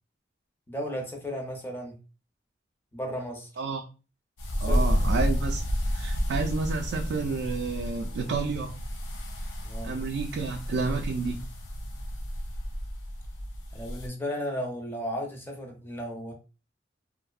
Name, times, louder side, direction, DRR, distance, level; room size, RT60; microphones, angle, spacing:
voice 1, 0.7-2.0 2.9-3.5 4.6-4.9 9.6-10.0 13.7-16.3, equal, 10° left, 0.6 m, -34 dB
sound 1, 4.4-14.1, equal, 85° left, 0.5 m, -31 dB
voice 2, 4.6-8.7 9.8-11.4, right 4 dB, 65° right, 0.3 m, -30 dB
2.6 x 2.0 x 2.3 m
head